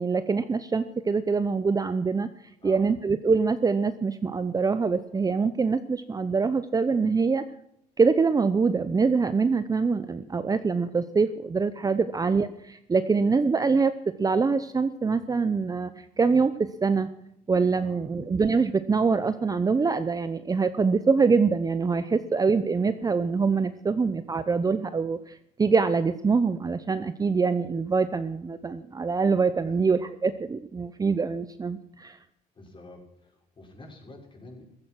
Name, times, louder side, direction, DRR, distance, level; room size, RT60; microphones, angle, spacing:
voice 1, 0.0-2.3 2.6-7.4 8.0-13.9 14.2-15.9 16.2-16.5 16.8-17.1 17.5-25.2 25.6-32.2, right 4 dB, 20° right, 12 dB, 0.8 m, -24 dB
voice 2, 2.6-3.0 12.1-12.2 17.8-18.1 23.9-24.1 29.6-30.0 32.5-34.6, left 2 dB, 30° left, 1 dB, 5.9 m, -48 dB
15.5 x 14.0 x 6.3 m, 0.77 s
cardioid pair, 110°, 17 cm